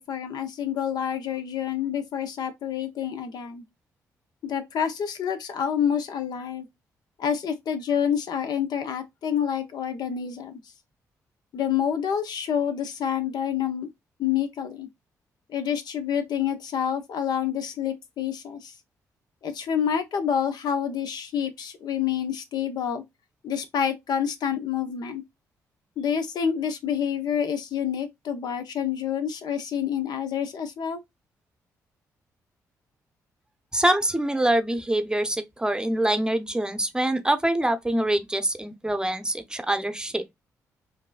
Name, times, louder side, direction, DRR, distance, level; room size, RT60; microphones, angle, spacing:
voice 1, 0.0-3.6 4.4-6.7 7.2-10.6 11.5-13.9 14.2-14.9 15.5-18.7 19.4-23.0 23.4-25.2 26.0-31.0, left 8 dB, 70° left, 0.8 m, -28 dB
voice 2, 33.7-40.2, right 1 dB, 10° right, 0.7 m, -25 dB
4.6 x 2.7 x 2.4 m
supercardioid pair, 55°, 7 cm